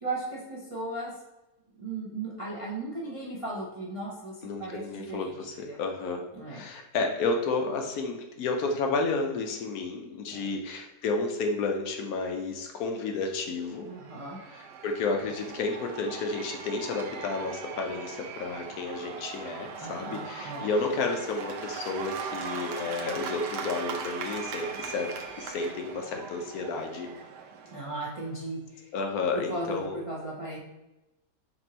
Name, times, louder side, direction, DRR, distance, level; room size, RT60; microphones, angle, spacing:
voice 1, 0.0-1.1 1.7-5.8 6.3-6.6 10.3-10.5 13.8-14.4 19.8-20.7 27.7-28.9 29.3-30.6, right 2 dB, 60° right, -5 dB, 0.3 m, -36 dB
voice 2, 4.4-13.9 14.5-25.1 25.4-27.1 28.9-30.0, left 3 dB, 70° left, 3 dB, 1.0 m, -31 dB
Cheering / Applause / Crowd, 13.6-28.4, right 6 dB, 90° right, 1.2 m, -40 dB
4.3 x 2.6 x 4.2 m, 0.98 s
omnidirectional pair, 1.8 m